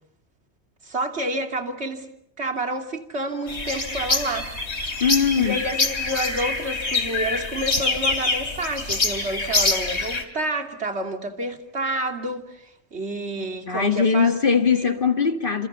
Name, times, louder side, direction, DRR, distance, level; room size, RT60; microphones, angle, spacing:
voice 1, 0.8-2.1 2.4-4.5 5.3-14.9, right 1 dB, 70° right, 3.1 m, -29 dB
sound 1, 3.5-10.2, left 3 dB, 70° left, 3.0 m, -25 dB
voice 2, 5.0-5.6 13.7-15.7, left 6 dB, 50° left, 2.0 m, -21 dB
29.5 x 27.5 x 6.9 m
omnidirectional pair, 1.2 m